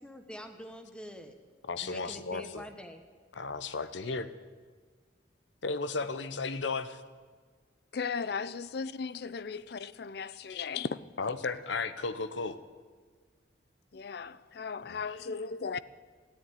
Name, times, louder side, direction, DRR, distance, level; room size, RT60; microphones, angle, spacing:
voice 1, 0.0-1.3 1.8-3.0, equal, 5° left, 1.1 m, -45 dB
voice 2, 1.7-2.7 3.4-4.3 5.6-7.0 10.5-10.6 11.2-12.6 14.8-15.4, left 4 dB, 85° left, 0.8 m, -35 dB
voice 3, 7.9-11.0 13.9-15.8, left 5 dB, 60° left, 0.5 m, -36 dB
13.5 x 10.0 x 9.5 m
head